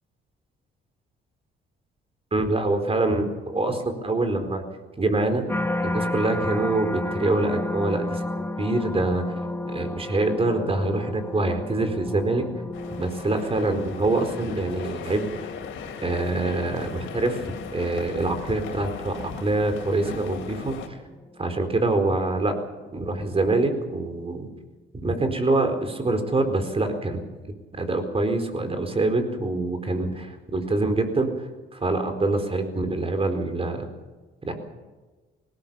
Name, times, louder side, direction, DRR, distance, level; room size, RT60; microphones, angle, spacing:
voice 1, 2.3-4.6 5.0-5.4 5.8-8.2 8.6-9.2 9.7-12.4 13.0-15.3 16.0-17.4 17.7-20.7 21.4-22.5 22.9-24.5 25.0-31.3 31.7-33.9 34.5-34.6, right 2 dB, 30° right, 7 dB, 4.3 m, -25 dB
sound 1, 5.5-20.7 21.2-21.6, left 2 dB, 10° left, 1.0 m, -34 dB
sound 2, 12.7-20.9, left 7 dB, 80° left, 3.3 m, -38 dB
20.0 x 18.0 x 7.5 m, 1.3 s
cardioid pair, 90°, 20 cm